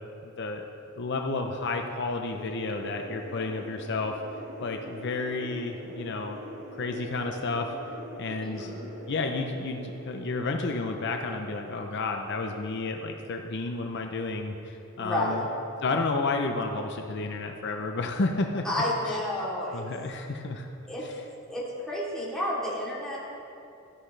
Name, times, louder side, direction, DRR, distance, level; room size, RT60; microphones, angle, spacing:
voice 1, 0.2-0.6 1.0-4.2 4.6-6.4 6.8-7.7 8.2-8.7 9.1-15.5 15.8-18.7 19.0-19.2 19.7-20.7 21.0-21.2, left 3 dB, 55° left, 4 dB, 0.7 m, -31 dB
sound 1, 2.3-14.7, equal, 60° right, 3.1 m, -44 dB
voice 2, 8.4-8.9 15.0-15.4 18.6-19.8 20.9-21.0 21.5-23.2, left 1 dB, 5° left, -8 dB, 3.1 m, -30 dB
16.5 x 12.0 x 3.3 m, 2.8 s
head